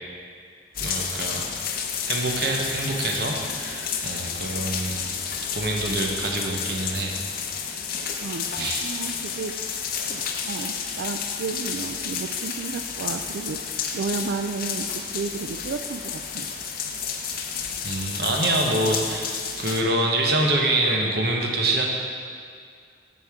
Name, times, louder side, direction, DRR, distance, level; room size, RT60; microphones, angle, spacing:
sound 1, 0.7-19.8, left 7 dB, 50° left, 0.6 m, -31 dB
voice 1, 0.8-1.5 2.1-5.1 5.5-7.2 8.5-8.9 17.8-21.9, right 2 dB, 60° right, 0 dB, 1.0 m, -25 dB
voice 2, 8.8-9.8 10.1-16.5, right 4 dB, 75° right, 5 dB, 0.3 m, -32 dB
7.8 x 7.6 x 3.6 m, 2.2 s
head